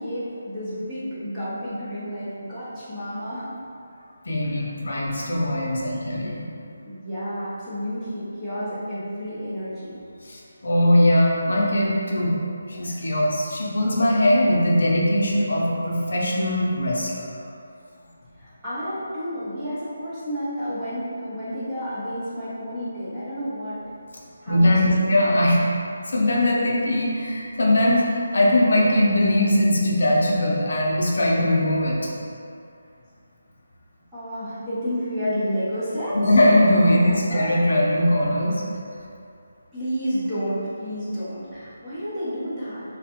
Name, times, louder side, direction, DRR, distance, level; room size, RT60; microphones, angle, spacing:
voice 1, 0.0-3.6 4.5-4.7 6.9-10.0 18.4-23.8 24.4-25.3 34.1-36.2 36.9-37.6 39.7-42.8, equal, 5° right, -15 dB, 0.4 m, -30 dB
voice 2, 4.3-6.4 10.2-12.3 12.7-17.3 24.5-25.6 26.1-32.0 36.1-38.5, left 1 dB, 55° left, -3 dB, 0.5 m, -20 dB
3.1 x 2.1 x 2.8 m, 2.4 s
hypercardioid pair, 180°, 0 cm